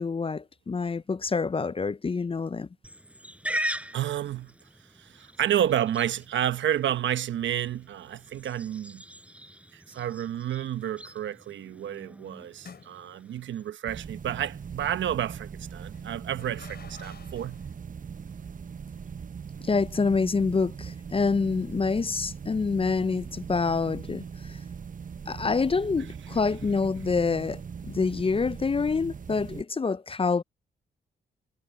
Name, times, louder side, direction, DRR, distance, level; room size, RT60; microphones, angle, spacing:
voice 1, 0.0-2.7 19.6-24.6 25.3-30.4, left 4 dB, 30° left, 0.5 m, -27 dB
Livestock farm animals working animals, 2.8-13.7, right 1 dB, 5° right, 4.5 m, -40 dB
voice 2, 3.9-4.5 4.9-9.0 9.7-17.6, right 11 dB, 75° right, 1.0 m, -30 dB
sound 1, 10.8-11.1 12.6-13.4 15.9-17.7, left 6 dB, 55° left, 6.1 m, -51 dB
sound 2, 13.9-29.6, right 6 dB, 45° right, 0.8 m, -40 dB
supercardioid pair, 45°, 19 cm